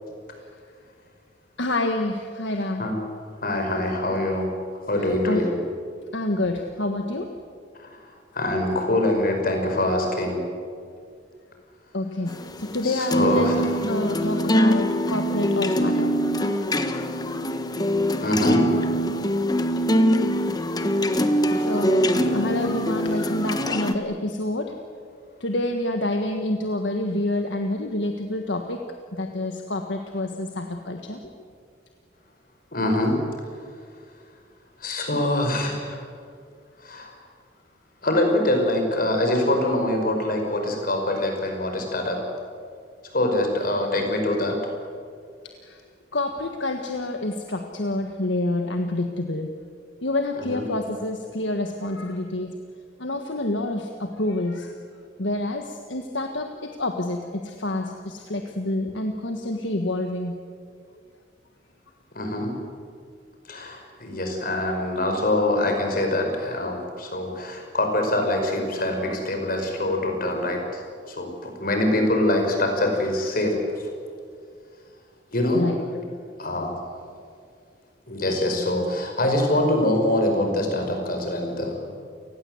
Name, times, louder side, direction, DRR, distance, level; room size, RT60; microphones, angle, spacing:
voice 1, 1.6-2.9 5.1-5.4 6.1-7.3 11.9-16.1 21.6-24.7 25.4-28.8 29.1-31.2 45.6-45.8 46.1-49.5 50.0-52.5 53.0-54.7 55.2-60.4 75.5-75.7, left 1 dB, 70° left, 4 dB, 1.6 m, -28 dB
voice 2, 3.4-4.5 4.9-5.6 7.8-8.0 8.3-10.4 12.8-13.8 18.2-18.7 32.7-33.2 34.8-36.0 36.8-37.1 38.0-42.2 43.1-44.6 50.4-50.6 62.2-62.5 63.5-70.8 71.1-73.6 75.3-75.7 76.4-76.7 78.1-81.9, left 1 dB, 50° left, 3 dB, 5.3 m, -24 dB
sound 1, 12.3-23.9, equal, 20° left, 1.2 m, -23 dB
29.5 x 19.0 x 8.0 m, 2.2 s
head